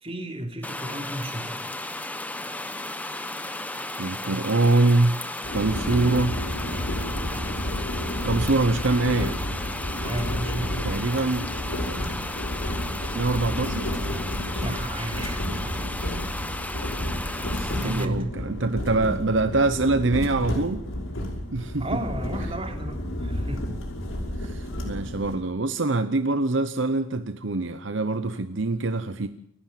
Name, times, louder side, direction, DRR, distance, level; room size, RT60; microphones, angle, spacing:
voice 1, 0.0-1.5 10.0-10.8 14.5-15.8 17.8-18.2 21.8-23.7, right 1 dB, 30° right, 4 dB, 3.4 m, -33 dB
sound 1, 0.6-18.0, left 2 dB, 10° left, 1.1 m, -34 dB
voice 2, 4.0-5.2 5.5-6.4 8.2-9.4 10.8-11.5 11.9-12.1 13.1-13.9 17.5-20.8 21.5-21.9 24.4-29.3, right 2 dB, 65° right, 11 dB, 0.9 m, -24 dB
sound 2, 5.4-25.4, equal, 80° left, 5.7 m, -31 dB
28.5 x 12.0 x 9.2 m, 0.71 s
head